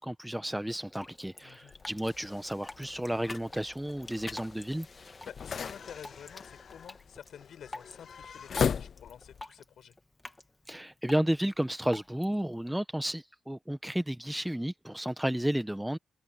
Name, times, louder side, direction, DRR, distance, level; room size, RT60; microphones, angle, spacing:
voice 1, 0.0-4.9 10.7-16.0, right 1 dB, 5° right, 1.2 m, -32 dB
Drip, 0.7-12.7, left 2 dB, 15° left, 2.2 m, -50 dB
voice 2, 1.4-1.7 5.0-9.9, left 9 dB, 75° left, 5.6 m, -50 dB
sound 1, 1.7-9.4, left 7 dB, 60° left, 0.4 m, -38 dB
sound 2, 2.0-7.2, left 4 dB, 40° left, 3.1 m, -50 dB
cardioid pair, 70°, 0 cm